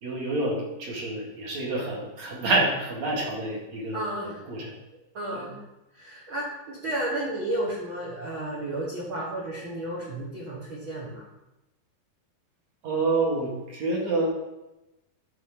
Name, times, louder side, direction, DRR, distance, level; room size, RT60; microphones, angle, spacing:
voice 1, 0.0-4.7 5.3-5.5 12.8-14.3, right 2 dB, 50° right, -3 dB, 2.8 m, -28 dB
voice 2, 3.9-4.4 5.1-5.6 5.9-11.2, right 1 dB, 85° right, -4 dB, 1.1 m, -32 dB
11.5 x 4.6 x 6.0 m, 0.97 s
omnidirectional pair, 4.7 m